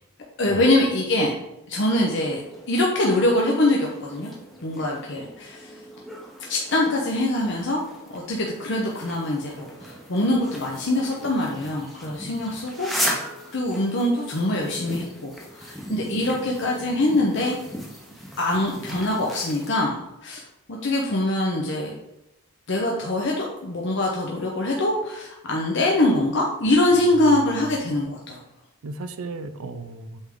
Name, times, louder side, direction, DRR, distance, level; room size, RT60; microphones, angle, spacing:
voice 1, 0.4-1.3 1.7-4.3 4.6-5.8 6.5-7.8 8.1-13.1 13.5-17.6 18.4-20.4 20.7-21.9 22.7-28.4, left 1 dB, 55° left, -2 dB, 0.8 m, -23 dB
sound 1, 2.2-19.7, equal, ahead, 0.8 m, -37 dB
voice 2, 26.9-27.7 28.8-30.3, right 2 dB, 80° right, 10 dB, 0.5 m, -36 dB
7.9 x 3.5 x 3.8 m, 0.88 s
head